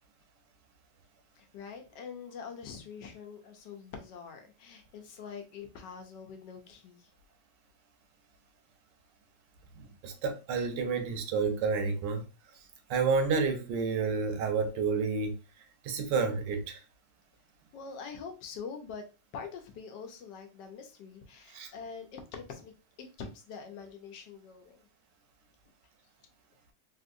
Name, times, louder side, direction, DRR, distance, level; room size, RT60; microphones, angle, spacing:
voice 1, 1.4-7.1 17.7-19.0 19.3-22.7 23.0-24.8, left 6 dB, 85° left, 1.3 m, -44 dB
voice 2, 9.8-12.2 12.5-12.6 12.9-15.4 15.8-16.8 21.5-21.7, right 5 dB, 85° right, 1.3 m, -30 dB
3.4 x 2.6 x 2.5 m
omnidirectional pair, 1.8 m